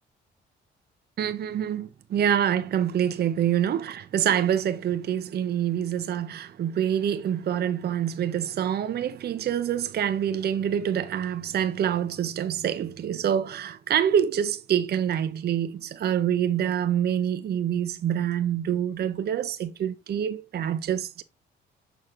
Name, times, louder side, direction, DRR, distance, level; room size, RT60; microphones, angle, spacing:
voice 1, 1.2-21.2, right 9 dB, 55° right, 0.6 m, -26 dB
6.6 x 6.2 x 3.6 m
cardioid pair, 90°, 20 cm